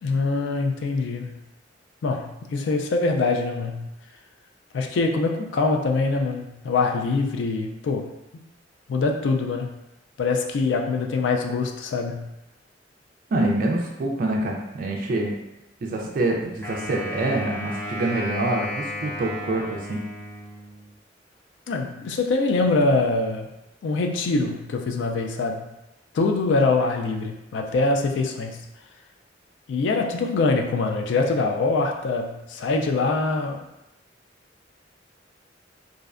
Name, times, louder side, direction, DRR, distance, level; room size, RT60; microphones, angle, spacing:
voice 1, 0.0-1.4 2.0-3.9 4.7-8.0 8.9-9.8 10.2-12.3 21.7-23.5 23.8-25.7 26.1-28.6 29.7-33.6, left 3 dB, 80° left, 3 dB, 0.3 m, -24 dB
voice 2, 13.3-15.3 15.8-20.0, right 2 dB, 50° right, 0 dB, 0.3 m, -26 dB
Wind instrument woodwind instrument, 16.6-20.9, left 1 dB, 10° left, 0.7 m, -34 dB
2.5 x 2.1 x 2.4 m, 0.92 s
head